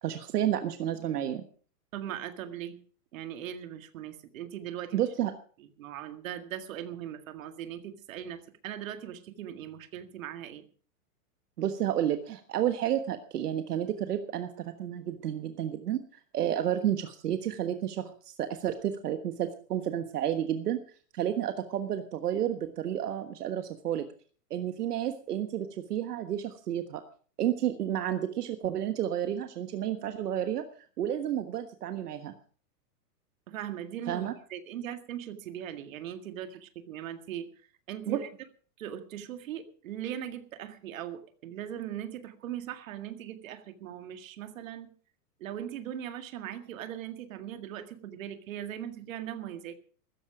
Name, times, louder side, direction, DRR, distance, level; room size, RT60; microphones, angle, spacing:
voice 1, 0.0-1.4 4.9-5.3 11.6-14.5 14.8-16.0 16.3-20.8 21.1-24.0 24.5-27.0 27.4-30.7 31.0-32.3 34.1-34.3 38.1-38.2, right 10 dB, 70° right, 8 dB, 1.5 m, -31 dB
voice 2, 1.9-2.8 3.1-5.0 5.8-10.7 33.5-37.5 37.9-38.3 38.8-44.9 45.4-49.7, right 10 dB, 55° right, 8 dB, 2.0 m, -39 dB
15.0 x 14.0 x 4.9 m, 0.43 s
supercardioid pair, 165°, 47 cm